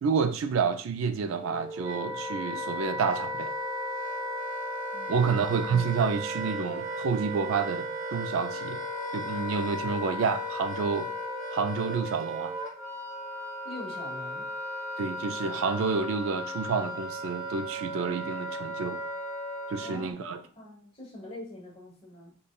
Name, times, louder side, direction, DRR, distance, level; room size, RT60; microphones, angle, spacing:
voice 1, 0.0-3.5 5.1-8.8 9.1-11.1 11.5-12.5 15.0-19.0 19.7-20.4, right 5 dB, 75° right, 0.3 m, -29 dB
Wind instrument woodwind instrument, 1.3-20.1, equal, 20° right, 1.0 m, -35 dB
voice 2, 4.9-5.5 13.6-14.5 19.8-22.4, left 1 dB, 30° left, 1.1 m, -44 dB
5.1 x 2.2 x 2.3 m
head